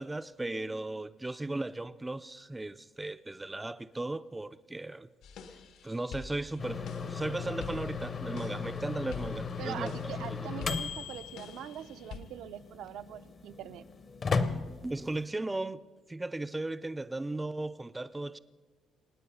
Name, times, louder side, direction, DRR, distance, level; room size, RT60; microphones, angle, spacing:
voice 1, 0.0-5.1 5.8-6.8 7.1-10.7 14.5-15.8 16.1-18.4, right 2 dB, 10° right, 0.4 m, -36 dB
sound 1, 5.2-12.2, left 5 dB, 80° left, 1.3 m, -48 dB
sound 2, 6.6-15.2, left 5 dB, 30° left, 0.7 m, -36 dB
voice 2, 9.6-13.8, right 11 dB, 75° right, 0.6 m, -43 dB
27.0 x 9.3 x 5.5 m
cardioid pair, 170°, 0 cm